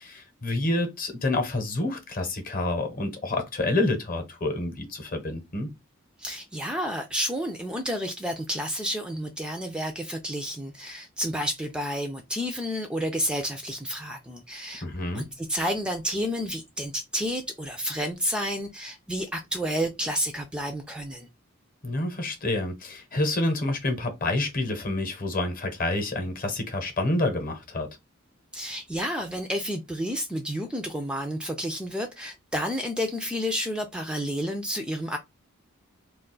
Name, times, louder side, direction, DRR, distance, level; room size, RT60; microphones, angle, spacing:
voice 1, 0.0-5.7 14.8-15.3 21.8-27.9, left 2 dB, 45° left, 0.8 m, -28 dB
voice 2, 6.2-14.8 15.1-21.3 28.5-35.2, equal, 5° right, 0.3 m, -30 dB
2.4 x 2.3 x 3.7 m
head